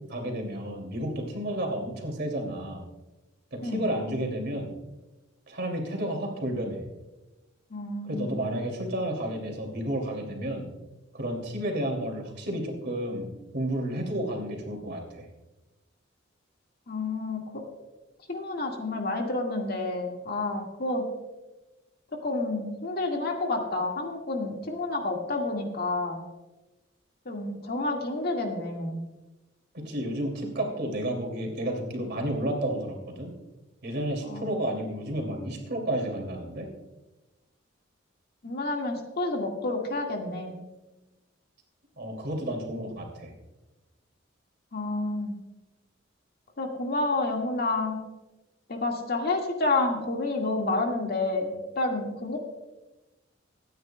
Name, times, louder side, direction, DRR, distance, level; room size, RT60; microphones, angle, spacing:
voice 1, 0.1-2.8 3.5-4.7 5.5-6.8 8.0-10.7 11.1-15.3 29.7-33.3 33.8-36.7 42.0-43.3, right 1 dB, 60° right, 1 dB, 2.6 m, -31 dB
voice 2, 7.7-8.4 16.9-17.6 18.3-21.0 22.2-26.2 27.3-29.0 34.3-34.6 38.4-40.5 44.7-45.4 46.6-48.0 48.7-52.4, left 2 dB, 55° left, 1 dB, 1.9 m, -29 dB
24.5 x 9.4 x 2.3 m, 1.1 s
head